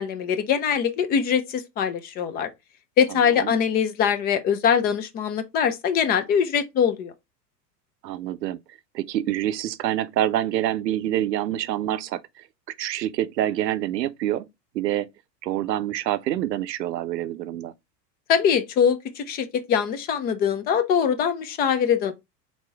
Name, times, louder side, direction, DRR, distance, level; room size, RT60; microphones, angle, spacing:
voice 1, 0.0-2.5 3.0-7.1 18.3-22.1, left 7 dB, 20° left, 0.3 m, -23 dB
voice 2, 8.0-12.4 12.8-14.5 14.7-15.1 15.4-17.7, right 12 dB, 90° right, 0.6 m, -26 dB
4.2 x 3.0 x 3.3 m
hypercardioid pair, 100°, 49 cm